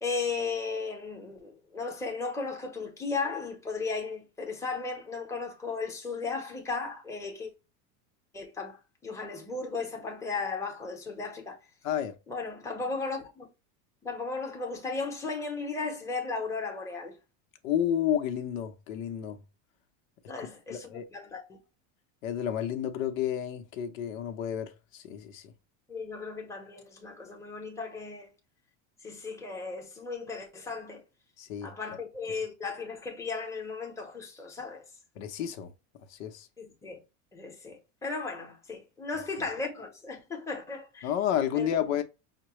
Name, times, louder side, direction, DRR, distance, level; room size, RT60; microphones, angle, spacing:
voice 1, 0.0-7.5 8.3-11.6 12.3-13.5 14.0-17.1 20.3-21.6 25.9-28.3 29.0-31.0 31.6-34.8 36.6-37.0 37.3-41.1 41.5-41.7, left 4 dB, 5° left, 0.9 m, -35 dB
voice 2, 17.6-19.4 20.4-21.0 22.2-25.5 31.4-31.7 35.2-35.7 36.1-36.5 41.0-42.0, left 9 dB, 85° left, 0.9 m, -31 dB
5.8 x 2.2 x 3.0 m
supercardioid pair, 150°, 40 cm